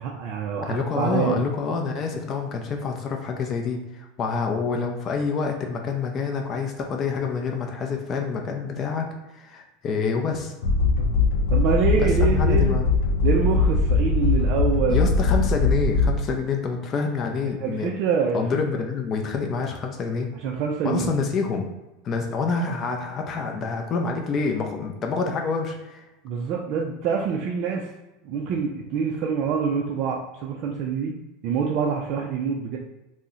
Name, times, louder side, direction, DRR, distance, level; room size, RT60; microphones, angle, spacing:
voice 1, 0.0-1.5 11.5-12.8 13.2-15.4 17.6-18.4 20.4-21.2 26.2-27.9 28.2-31.1 31.4-32.8, right 6 dB, 45° right, -1 dB, 0.3 m, -26 dB
voice 2, 0.6-10.5 11.9-12.9 14.9-17.9 18.3-20.3 20.8-21.6 22.0-26.1, left 5 dB, 30° left, 2 dB, 0.4 m, -27 dB
sound 1, 10.6-16.4, left 3 dB, 90° left, 0.4 m, -21 dB
2.7 x 2.0 x 3.6 m, 1.0 s
supercardioid pair, 150°, 0 cm